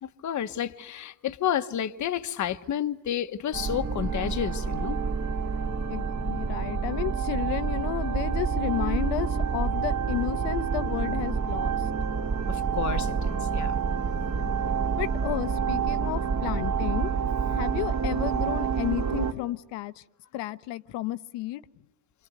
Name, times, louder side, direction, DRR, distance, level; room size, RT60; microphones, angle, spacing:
voice 1, 0.0-5.0 12.5-13.8, left 10 dB, 40° left, 1.3 m, -31 dB
sound 1, 3.5-19.3, right 6 dB, 40° right, 2.6 m, -28 dB
voice 2, 5.9-11.9 14.4-14.5 15.0-20.0 20.3-21.6, left 15 dB, 75° left, 1.2 m, -32 dB
29.0 x 26.0 x 7.9 m
cardioid pair, 120°, 43 cm